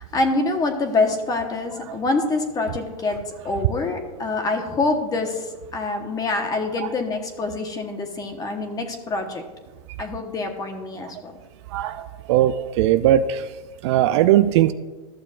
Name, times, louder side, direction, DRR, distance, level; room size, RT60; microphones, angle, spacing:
voice 1, 0.0-9.4 10.0-11.3, left 3 dB, 20° left, 4 dB, 1.2 m, -25 dB
voice 2, 12.3-13.4 13.8-14.7, right 12 dB, 50° right, 12 dB, 0.4 m, -18 dB
14.0 x 6.9 x 2.5 m, 1.3 s
hypercardioid pair, 125°, 19 cm